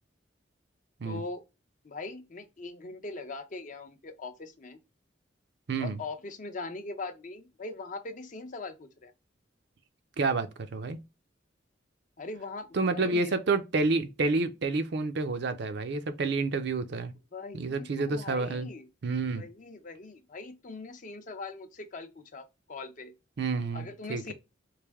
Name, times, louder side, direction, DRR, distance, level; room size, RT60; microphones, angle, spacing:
voice 1, 1.0-1.4 1.8-4.8 5.8-9.1 12.2-13.4 17.3-18.9 19.4-23.1 23.7-24.3, left 3 dB, 45° left, 0.6 m, -41 dB
voice 2, 10.2-11.0 12.7-17.1 17.5-18.7 19.0-19.4 23.4-24.3, right 3 dB, 60° right, 0.5 m, -29 dB
3.3 x 2.6 x 3.4 m
head